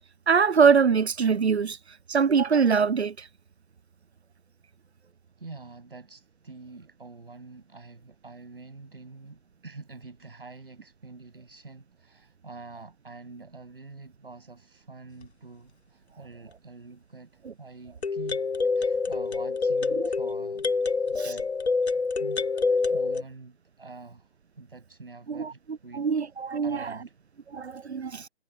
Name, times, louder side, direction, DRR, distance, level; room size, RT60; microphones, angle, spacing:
voice 1, 0.3-1.8 2.1-3.3 20.0-20.1 21.2-21.3 25.3-25.5 25.9-27.0 27.5-28.3, right 6 dB, 90° right, 0.5 m, -23 dB
voice 2, 5.4-17.3 17.6-18.5 18.7-20.7 21.1-21.5 21.9-24.3 24.6-26.1 26.6-27.1, right 3 dB, 60° right, 7.6 m, -46 dB
sound 1, 15.2-15.3 18.0-23.2, left 4 dB, 90° left, 0.7 m, -26 dB
figure-of-eight pair, 150°, 32 cm